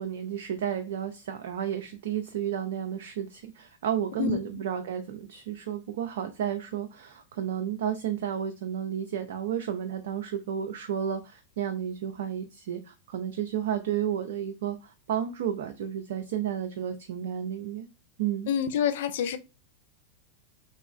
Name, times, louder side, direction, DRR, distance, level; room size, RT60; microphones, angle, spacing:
voice 1, 0.0-17.9 18.2-18.5, right 9 dB, 60° right, 0.4 m, -32 dB
voice 2, 4.2-4.6 18.5-19.4, left 8 dB, 55° left, 0.4 m, -28 dB
3.0 x 2.9 x 2.3 m
figure-of-eight pair, 90°, 0 cm